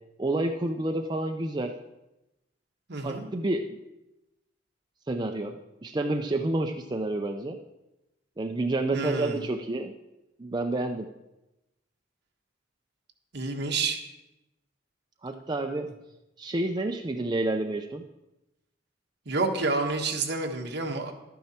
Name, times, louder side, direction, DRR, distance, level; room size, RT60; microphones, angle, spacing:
voice 1, 0.2-1.7 3.0-3.8 5.1-5.6 5.8-7.6 8.4-9.9 10.4-11.1 13.6-13.7 15.2-15.9 16.4-18.0, right 2 dB, 25° right, 3 dB, 0.5 m, -29 dB
voice 2, 2.9-3.3 8.9-9.4 13.3-14.0 19.2-21.1, right 3 dB, 60° right, 2 dB, 1.5 m, -29 dB
12.0 x 9.2 x 4.3 m, 0.95 s
head